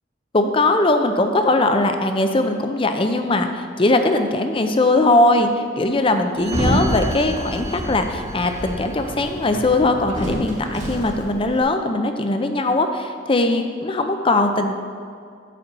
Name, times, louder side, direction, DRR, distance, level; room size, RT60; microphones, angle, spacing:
voice 1, 0.3-14.8, left 2 dB, 30° left, 6 dB, 0.6 m, -20 dB
Sliding door, 6.4-11.6, right 1 dB, 45° right, 1.5 m, -27 dB
8.4 x 4.2 x 6.8 m, 2.2 s
head